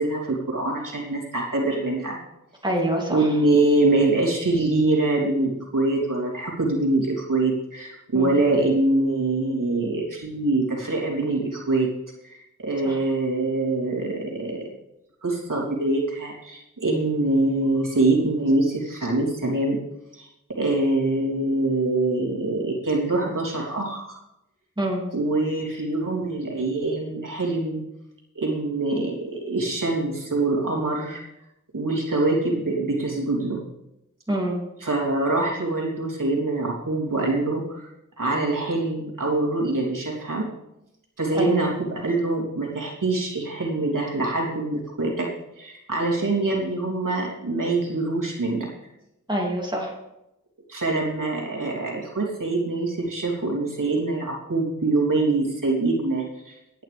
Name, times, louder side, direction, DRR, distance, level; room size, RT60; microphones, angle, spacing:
voice 1, 0.0-2.2 3.1-11.9 12.2-14.7 15.2-19.8 20.1-24.2 25.1-27.8 28.3-31.2 31.7-33.7 34.8-37.9 38.2-40.5 41.2-45.3 45.6-48.7 50.7-56.5, right 2 dB, 85° right, -3 dB, 3.2 m, -24 dB
voice 2, 2.6-3.2 8.1-8.3 12.8-13.0 24.8-25.0 34.3-34.6 41.3-41.6 49.3-49.9, right 1 dB, 15° right, -2 dB, 2.9 m, -25 dB
17.5 x 10.0 x 3.5 m, 0.89 s
wide cardioid pair, 80°, 31 cm